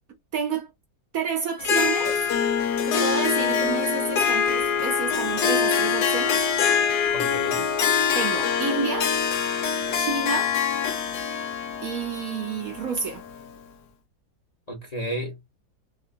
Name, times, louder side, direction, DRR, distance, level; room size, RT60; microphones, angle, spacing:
voice 1, 0.3-0.7 1.1-2.2 2.8-6.5 8.1-9.2 9.9-10.6 11.8-13.2, right 5 dB, 60° right, 1.1 m, -29 dB
Harp, 1.6-13.4, left 7 dB, 70° left, 1.3 m, -24 dB
voice 2, 7.1-7.7 14.7-15.5, equal, 25° left, 1.0 m, -33 dB
3.6 x 2.6 x 2.6 m
omnidirectional pair, 1.9 m